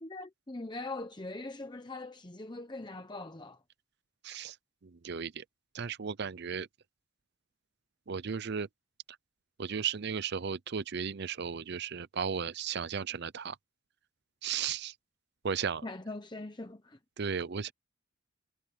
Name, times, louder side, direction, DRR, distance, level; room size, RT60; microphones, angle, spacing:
voice 1, 0.0-3.6 15.8-17.0, left 2 dB, 20° left, 0.9 m, -41 dB
voice 2, 4.2-4.6 4.8-5.4 5.7-6.7 8.1-8.7 9.6-13.6 14.4-14.9 15.4-15.9 17.2-17.7, right 6 dB, 50° right, 0.6 m, -35 dB
head